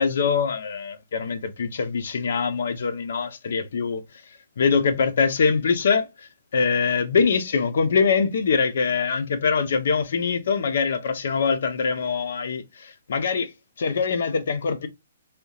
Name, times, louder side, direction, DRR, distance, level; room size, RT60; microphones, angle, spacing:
voice 1, 0.0-4.0 4.6-6.1 6.5-13.5 13.8-14.9, left 5 dB, 65° left, 0.6 m, -23 dB
3.3 x 2.8 x 2.3 m
hypercardioid pair, 165°, 0 cm